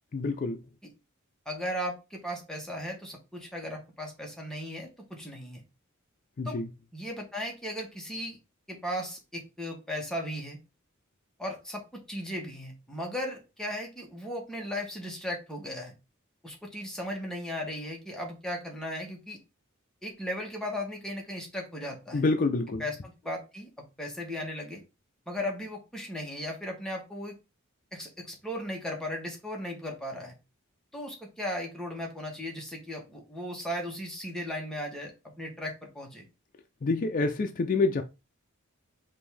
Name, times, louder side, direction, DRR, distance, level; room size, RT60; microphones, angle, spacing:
voice 1, 0.1-0.6 6.4-6.7 22.1-22.8 36.8-38.0, left 3 dB, 40° left, 0.4 m, -27 dB
voice 2, 1.4-5.6 6.4-6.6 6.9-8.4 8.7-10.6 11.4-15.9 16.4-19.4 20.0-22.2 22.8-24.8 25.3-27.3 27.9-30.4 30.9-35.1 35.4-36.3, left 1 dB, 5° left, 1.1 m, -36 dB
5.2 x 2.6 x 3.3 m
head